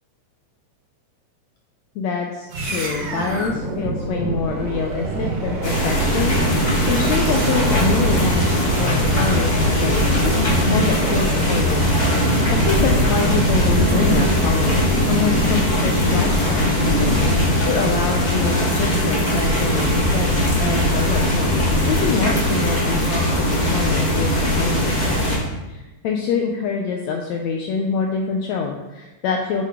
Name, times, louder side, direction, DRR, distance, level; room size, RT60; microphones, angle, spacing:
voice 1, 1.9-9.5 9.8-20.3 20.6-25.2 25.7-29.6, left 5 dB, 85° left, 2 dB, 1.5 m, -26 dB
sound 1, 2.5-15.1, right 3 dB, 90° right, 0.9 m, -26 dB
sound 2, 5.6-25.4, left 1 dB, 25° left, 0.8 m, -19 dB
8.5 x 5.7 x 3.7 m, 1.1 s
omnidirectional pair, 3.9 m